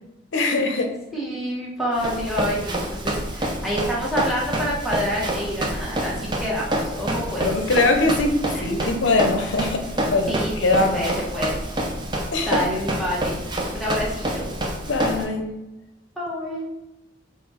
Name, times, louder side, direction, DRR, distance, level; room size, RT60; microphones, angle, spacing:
voice 1, 0.3-0.9 7.4-10.4 10.6-11.0 12.3-12.6 14.8-15.4, left 3 dB, 75° left, 4 dB, 0.6 m, -22 dB
voice 2, 1.1-6.1 6.4-7.5 8.5-8.9 10.3-11.6 12.4-14.5 16.2-16.6, equal, ahead, -6 dB, 1.1 m, -28 dB
Run, 2.0-15.2, right 1 dB, 25° right, 0.5 m, -27 dB
4.1 x 2.4 x 4.2 m, 0.98 s
head